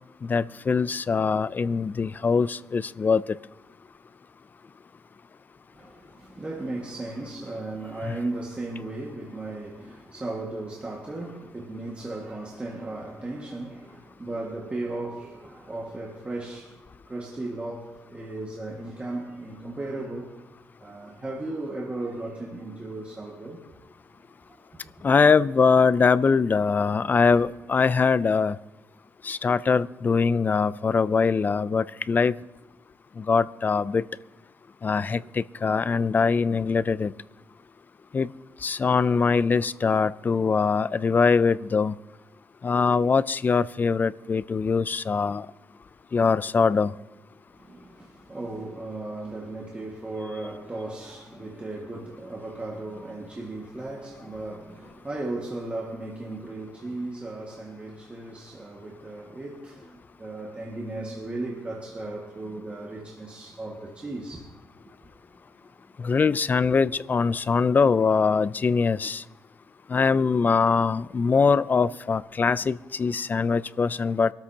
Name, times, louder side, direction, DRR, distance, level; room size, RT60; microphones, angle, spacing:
voice 1, 0.2-3.2 8.1-8.2 25.0-28.6 29.2-32.3 33.2-34.1 34.8-37.1 38.1-38.3 38.6-41.9 42.6-45.5 46.1-46.9 66.0-69.2 69.9-74.3, left 5 dB, 30° left, 0.4 m, -22 dB
voice 2, 5.7-20.4 20.8-23.7 24.5-24.9 27.3-27.4 47.5-64.5 66.6-66.7, right 2 dB, 20° right, 1.8 m, -36 dB
24.5 x 13.0 x 2.8 m
cardioid pair, 110°, 6 cm